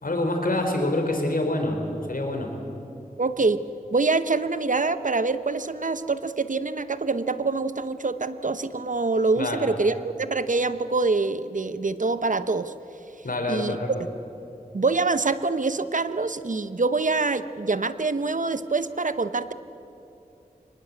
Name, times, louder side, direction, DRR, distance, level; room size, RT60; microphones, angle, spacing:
voice 1, 0.0-1.8 2.1-2.5 9.4-9.6 13.2-13.9, left 1 dB, 70° left, 4 dB, 3.9 m, -26 dB
voice 2, 3.2-3.6 3.9-12.7 13.5-13.8 14.7-19.5, right 3 dB, 60° right, 12 dB, 0.9 m, -25 dB
24.5 x 19.5 x 8.3 m, 2.9 s
wide cardioid pair, 60°, 15 cm